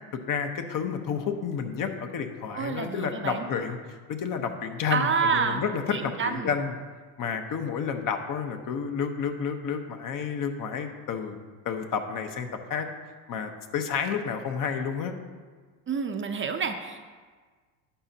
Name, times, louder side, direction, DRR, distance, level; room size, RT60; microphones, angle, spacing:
voice 1, 0.1-6.7 7.2-11.4 11.6-12.9 13.3-15.1, left 6 dB, 45° left, 6 dB, 1.1 m, -30 dB
voice 2, 2.5-3.5 4.9-5.6 5.9-6.5 15.9-17.0, right 6 dB, 30° right, 6 dB, 0.7 m, -28 dB
11.5 x 8.0 x 2.9 m, 1.5 s
supercardioid pair, 95°, 44 cm